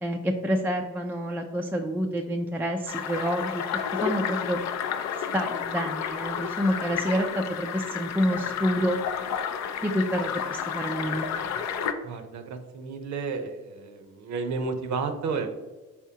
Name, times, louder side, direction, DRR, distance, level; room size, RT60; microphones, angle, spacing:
voice 1, 0.0-3.6 3.9-4.6 5.1-9.0 9.8-11.3, equal, 5° right, 2 dB, 0.3 m, -28 dB
sound 1, 2.9-11.9, left 7 dB, 65° left, 0.5 m, -31 dB
voice 2, 12.0-15.5, right 4 dB, 70° right, 7 dB, 0.6 m, -32 dB
4.4 x 3.5 x 2.8 m, 1.2 s
cardioid pair, 90°, 30 cm